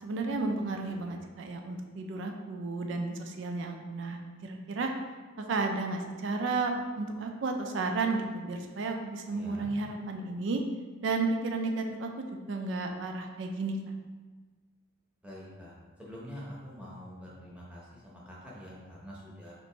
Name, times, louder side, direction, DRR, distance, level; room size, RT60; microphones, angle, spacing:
voice 1, 0.0-4.9 5.4-10.6 11.0-13.8, right 3 dB, 55° right, 4 dB, 0.4 m, -33 dB
voice 2, 9.3-9.7 15.2-15.7 16.0-19.5, equal, 5° right, -6 dB, 0.7 m, -46 dB
2.9 x 2.5 x 4.3 m, 1.4 s
head